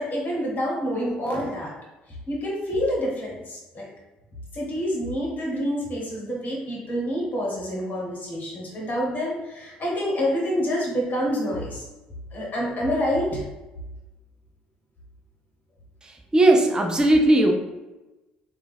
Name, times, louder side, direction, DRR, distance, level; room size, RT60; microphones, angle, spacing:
voice 1, 0.0-1.7 2.3-3.9 4.5-11.9 12.3-13.4, equal, 40° left, -3 dB, 1.3 m, -27 dB
voice 2, 16.3-17.5, right 1 dB, 15° right, 3 dB, 0.5 m, -17 dB
3.3 x 2.4 x 3.4 m, 1.1 s
figure-of-eight pair, 50°, 5 cm